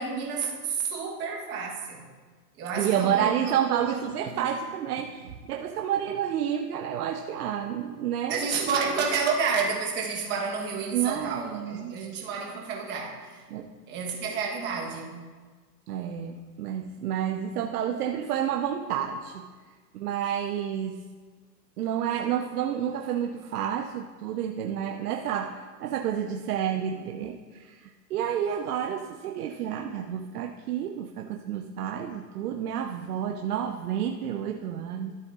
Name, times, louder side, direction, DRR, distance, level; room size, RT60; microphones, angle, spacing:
voice 1, 0.0-2.0 2.6-4.0 4.4-4.5 8.3-13.4 13.9-15.3, right 5 dB, 20° right, -1 dB, 1.1 m, -30 dB
voice 2, 2.7-8.5 10.9-12.0 13.5-13.7 15.9-19.5 19.9-21.0 21.8-35.1, right 9 dB, 65° right, 4 dB, 0.7 m, -30 dB
13.0 x 7.7 x 2.4 m, 1.5 s
hypercardioid pair, 155°, 50 cm